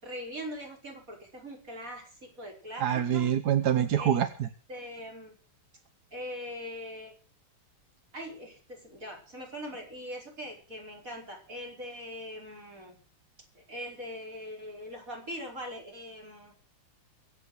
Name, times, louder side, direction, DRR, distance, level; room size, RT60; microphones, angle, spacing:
voice 1, 0.0-3.3 4.0-4.2 4.7-5.3 6.1-7.1 8.1-13.0 13.5-16.5, equal, 40° right, 0 dB, 5.6 m, -41 dB
voice 2, 2.8-4.5, right 9 dB, 55° right, 10 dB, 1.3 m, -26 dB
23.5 x 8.5 x 6.2 m, 0.38 s
omnidirectional pair, 2.3 m